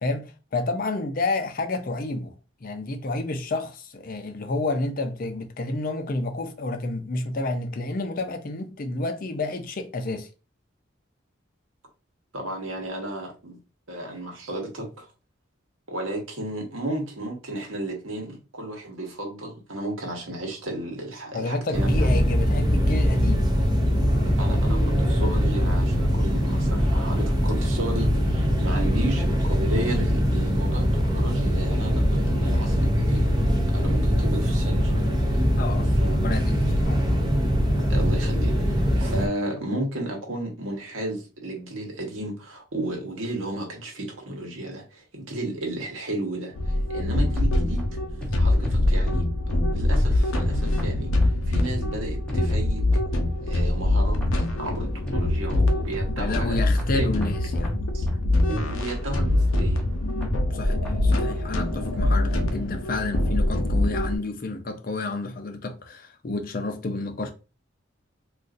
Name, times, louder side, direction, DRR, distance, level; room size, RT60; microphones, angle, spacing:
voice 1, 0.0-2.3 2.6-10.3 21.3-23.5 35.6-35.9 36.1-37.0 56.2-57.7 60.5-67.3, left 2 dB, 45° left, 0.5 m, -30 dB
voice 2, 12.3-13.6 13.9-15.1 15.9-22.1 24.4-33.3 33.7-35.4 35.8-36.4 37.9-47.9 48.4-49.2 49.7-52.8 53.4-57.1 57.9-58.1 58.5-59.8, right 1 dB, 85° right, 1.2 m, -33 dB
sound 1, 21.7-39.3, equal, 20° right, 0.5 m, -22 dB
sound 2, 46.5-64.2, left 1 dB, 90° left, 0.6 m, -24 dB
sound 3, 47.4-53.4 54.2-61.1, left 1 dB, 5° left, 0.8 m, -33 dB
3.8 x 2.5 x 2.5 m
head